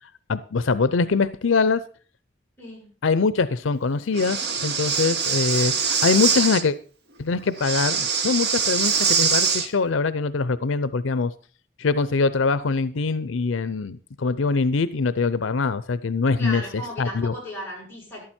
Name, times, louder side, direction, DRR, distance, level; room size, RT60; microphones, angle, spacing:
voice 1, 0.3-1.8 3.0-6.8 7.2-11.3 11.8-16.6 17.0-17.3, left 4 dB, 80° left, 15 dB, 0.6 m, -23 dB
voice 2, 2.6-2.9 16.4-18.2, left 1 dB, 10° left, -5 dB, 7.5 m, -35 dB
Breathing, 4.1-6.6 7.6-9.7, right 6 dB, 55° right, 1.3 m, -23 dB
13.5 x 11.5 x 4.3 m, 0.40 s
head